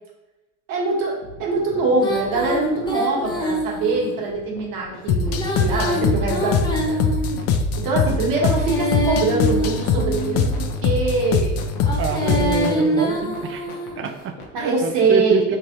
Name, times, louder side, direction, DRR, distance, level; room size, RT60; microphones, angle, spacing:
voice 1, 0.7-7.0 7.8-11.6 12.2-13.0 14.5-15.6, right 3 dB, 50° right, -3 dB, 1.4 m, -23 dB
sound 1, 1.2-14.6, left 4 dB, 85° left, 0.9 m, -41 dB
Female singing, 2.0-4.1 5.2-7.6 8.3-10.5 11.8-14.0, right 1 dB, 10° left, 0.9 m, -26 dB
sound 2, 5.1-12.8, left 5 dB, 40° left, 0.4 m, -22 dB
voice 2, 12.0-13.7 13.9-15.6, right 6 dB, 30° right, 6 dB, 0.4 m, -27 dB
3.3 x 3.3 x 2.8 m, 1.0 s
hypercardioid pair, 75°, 42 cm